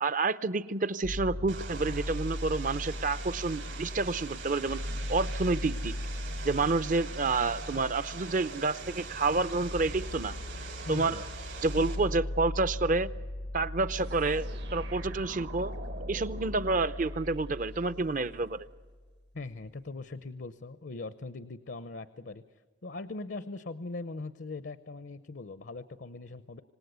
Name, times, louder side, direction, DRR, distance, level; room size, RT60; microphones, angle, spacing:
voice 1, 0.0-4.8 5.1-5.9 6.4-10.3 10.9-11.2 11.6-13.1 13.5-14.4 14.7-15.7 16.1-18.7, right 3 dB, 45° right, 15 dB, 0.7 m, -29 dB
sound 1, 1.0-19.0, left 1 dB, 80° left, 1.1 m, -39 dB
Vehicle, 1.5-12.0, right 5 dB, 90° right, 6.2 m, -44 dB
voice 2, 10.8-11.2 19.3-22.4 22.8-26.6, left 3 dB, 65° left, 13 dB, 0.7 m, -40 dB
sound 2, 13.9-17.8, right 2 dB, 65° right, 1.5 m, -46 dB
26.5 x 18.5 x 8.2 m, 1.5 s
head